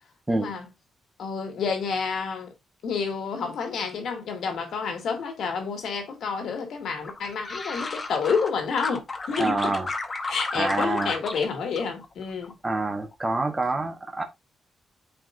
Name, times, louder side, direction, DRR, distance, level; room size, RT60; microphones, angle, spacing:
voice 1, 0.3-0.7 1.2-2.5 2.8-9.7 10.3-12.6, left 5 dB, 65° left, 2.2 m, -29 dB
sound 1, 7.0-8.5 8.8-11.5 11.8-12.5 12.8-13.3, left 3 dB, 25° left, 0.8 m, -33 dB
voice 2, 9.4-9.9 10.5-11.1 12.6-14.2, right 2 dB, 15° right, 1.0 m, -26 dB
8.9 x 4.7 x 2.6 m
wide cardioid pair, 165°, 0 cm